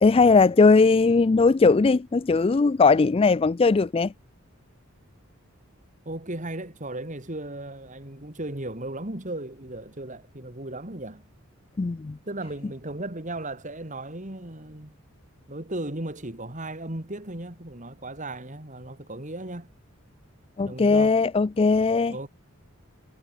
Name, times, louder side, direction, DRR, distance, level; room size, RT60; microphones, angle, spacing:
voice 1, 0.0-4.1 11.8-12.2 20.6-22.1, left 4 dB, 25° left, 0.3 m, -19 dB
voice 2, 6.0-11.3 12.3-14.9 15.5-19.7 20.6-21.2 22.1-22.3, right 1 dB, 35° right, 3.1 m, -36 dB
head